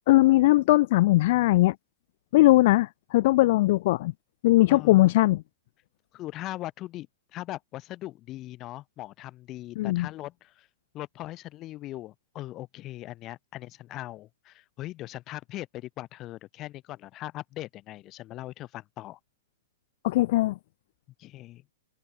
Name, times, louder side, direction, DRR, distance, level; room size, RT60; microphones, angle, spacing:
voice 1, 0.1-1.8 2.3-4.1 4.4-5.4 9.8-10.1 20.0-20.6, left 18 dB, 50° left, 0.4 m, -20 dB
voice 2, 4.7-5.1 6.1-10.7 10.9-19.2 21.2-21.6, left 16 dB, 30° left, 7.5 m, -40 dB
open air
hypercardioid pair, 155°, 0 cm